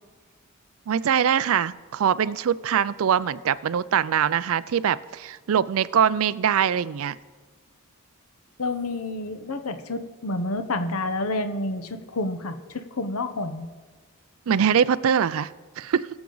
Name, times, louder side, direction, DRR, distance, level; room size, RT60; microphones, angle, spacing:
voice 1, 0.9-7.2 14.5-16.1, right 8 dB, 70° right, 18 dB, 0.4 m, -23 dB
voice 2, 8.6-13.7, left 2 dB, 75° left, 9 dB, 0.9 m, -29 dB
21.0 x 7.1 x 3.9 m, 1.4 s
head